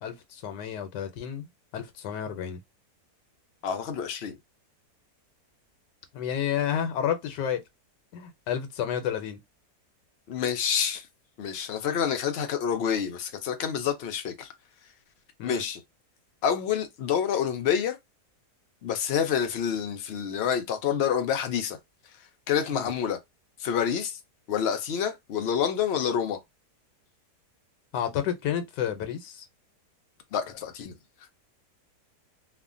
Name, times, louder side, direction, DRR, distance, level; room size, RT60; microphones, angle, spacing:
voice 1, 0.0-1.5 1.7-2.6 6.1-7.6 8.1-9.4 15.4-15.6 22.7-22.9 27.9-29.4, left 9 dB, 85° left, 1.3 m, -30 dB
voice 2, 3.6-4.4 10.3-11.1 11.4-14.5 15.4-15.8 16.4-18.0 18.8-21.8 22.5-23.2 23.6-24.2 24.5-26.4 30.3-30.9, left 8 dB, 70° left, 0.6 m, -28 dB
3.2 x 2.1 x 2.4 m
omnidirectional pair, 1.8 m